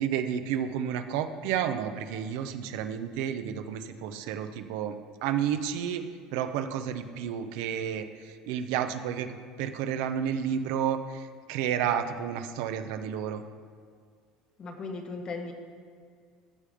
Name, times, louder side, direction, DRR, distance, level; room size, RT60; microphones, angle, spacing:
voice 1, 0.0-5.0 5.2-6.0 6.3-8.1 8.5-9.3 9.6-13.4, right 9 dB, 80° right, 8 dB, 0.7 m, -31 dB
voice 2, 14.6-15.5, left 3 dB, 35° left, 4 dB, 1.2 m, -37 dB
14.0 x 5.0 x 5.0 m, 2.1 s
supercardioid pair, 110°, 2 cm